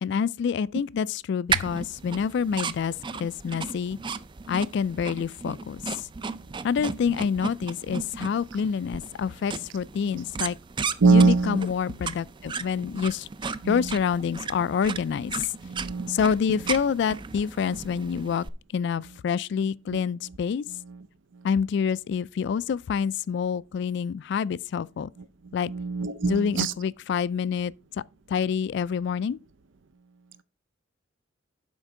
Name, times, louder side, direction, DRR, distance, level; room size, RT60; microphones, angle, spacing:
voice 1, 0.0-4.0 4.5-6.0 6.6-10.6 11.1-13.3 13.7-15.5 16.1-18.5 18.7-20.6 21.4-25.1 25.5-25.7 26.2-27.7 28.3-29.4, left 6 dB, 65° left, 0.3 m, -27 dB
sound 1, 1.5-18.5, right 5 dB, 25° right, 0.4 m, -35 dB
voice 2, 11.0-11.6 13.6-13.8 15.6-16.2 25.7-26.7, right 4 dB, 80° right, 0.5 m, -22 dB
11.5 x 4.4 x 3.7 m
head